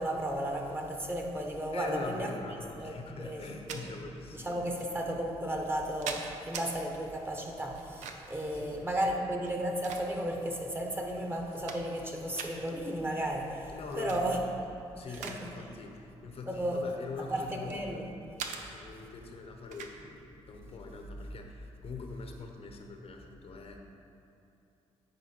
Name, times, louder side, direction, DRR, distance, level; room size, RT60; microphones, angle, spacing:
voice 1, 0.0-2.3 2.8-3.8 4.3-14.4 15.2-15.5 16.5-16.8 17.3-18.1, right 1 dB, 20° right, 1 dB, 1.2 m, -34 dB
voice 2, 1.7-4.9 8.1-8.2 8.5-9.2 13.7-14.4 15.0-18.2 18.5-23.8, left 4 dB, 55° left, 3 dB, 0.9 m, -43 dB
sound 1, 3.4-3.8 4.8-4.9 5.6-6.7 7.7-8.4 9.4-10.4 11.0-11.1 11.4-12.1 12.3-12.5 13.9-14.2 14.6-15.4 15.7-16.0 16.7-17.8 18.4-18.6 19.7-20.0, right 6 dB, 85° right, 0.6 m, -41 dB
9.5 x 4.4 x 4.5 m, 2.7 s
supercardioid pair, 60°, 12 cm